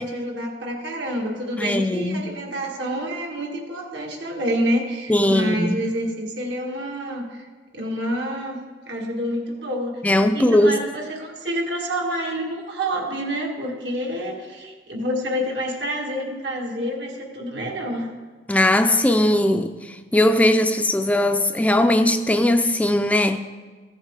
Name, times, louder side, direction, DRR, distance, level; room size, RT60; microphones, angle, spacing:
voice 1, 0.0-7.5 7.7-8.6 8.9-10.0 10.3-18.1, equal, 85° right, 1.7 m, -28 dB
voice 2, 1.6-2.3 5.1-5.8 10.0-10.8 18.5-23.4, left 1 dB, 10° left, 0.3 m, -19 dB
15.0 x 7.2 x 3.7 m
head